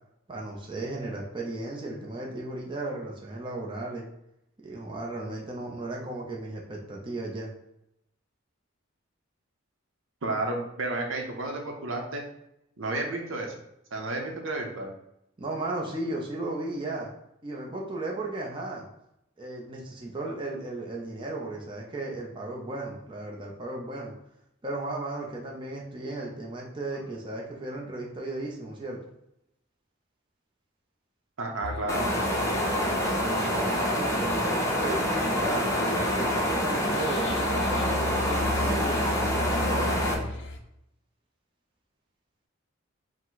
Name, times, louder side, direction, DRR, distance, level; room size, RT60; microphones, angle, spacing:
voice 1, 0.3-4.1 4.6-7.5 15.4-17.1 17.4-18.9 19.4-24.1 24.6-29.0 33.4-35.7 36.1-40.3, right 2 dB, 25° right, -2 dB, 0.6 m, -35 dB
voice 2, 10.2-12.2 12.8-13.5 13.9-14.9 31.4-32.1, right 2 dB, 75° right, 2 dB, 0.7 m, -31 dB
sound 1, 31.6-40.6, left 2 dB, 60° left, 0.5 m, -36 dB
sound 2, 31.9-40.1, equal, 15° left, 0.7 m, -26 dB
4.9 x 2.1 x 3.9 m, 0.81 s
head